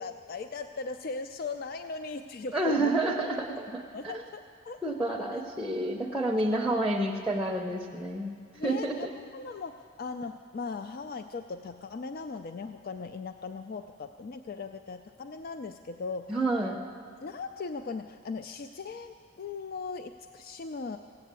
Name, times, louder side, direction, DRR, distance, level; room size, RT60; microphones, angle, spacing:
voice 1, 0.0-2.9 3.9-4.8 8.5-16.3 17.2-21.0, left 4 dB, 45° left, 8 dB, 0.3 m, -38 dB
voice 2, 2.5-4.1 4.8-9.1 16.3-16.8, right 2 dB, 5° right, 1 dB, 0.6 m, -29 dB
16.5 x 8.4 x 8.1 m, 2.3 s
head